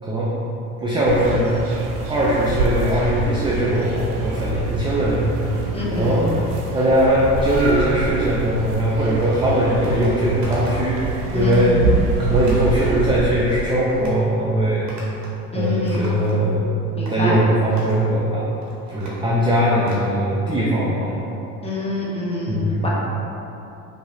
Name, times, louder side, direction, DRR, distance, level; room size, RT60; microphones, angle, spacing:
voice 1, 0.8-1.6 2.1-5.3 5.9-6.2 6.7-11.8 12.2-14.9 15.5-16.6 17.1-18.4 18.9-21.1 22.5-22.9, right 1 dB, 10° right, -6 dB, 0.4 m, -20 dB
sound 1, 1.0-13.2, right 3 dB, 75° right, 0.7 m, -26 dB
voice 2, 5.7-6.3 11.3-11.8 15.5-16.1 16.9-17.4 21.6-22.9, left 2 dB, 15° left, -6 dB, 1.1 m, -26 dB
sound 2, 9.8-10.1 10.4-10.9 11.3-11.7 12.4-12.7 13.2-13.6 13.9-14.2 14.9-15.4 15.7-16.6 17.1-17.2 17.7-18.0 18.5-20.1, right 1 dB, 40° right, 1.2 m, -39 dB
4.8 x 2.8 x 2.7 m, 2.9 s
hypercardioid pair, 75°, 45 cm